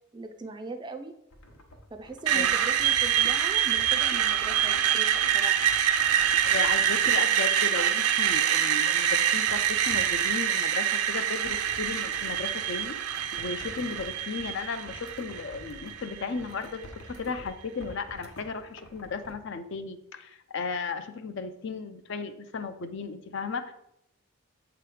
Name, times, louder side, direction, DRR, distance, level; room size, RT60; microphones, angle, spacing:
voice 1, 0.1-1.1 1.9-5.6, right 3 dB, 20° right, 6 dB, 0.3 m, -40 dB
sound 1, 1.3-7.4 9.5-10.3 11.4-19.4, equal, 80° left, 1.0 m, -48 dB
Screech, 2.3-16.2, right 9 dB, 90° right, 0.5 m, -25 dB
voice 2, 6.4-13.0 13.4-23.7, left 4 dB, 55° left, 9 dB, 0.5 m, -35 dB
7.6 x 3.0 x 4.8 m, 0.79 s
head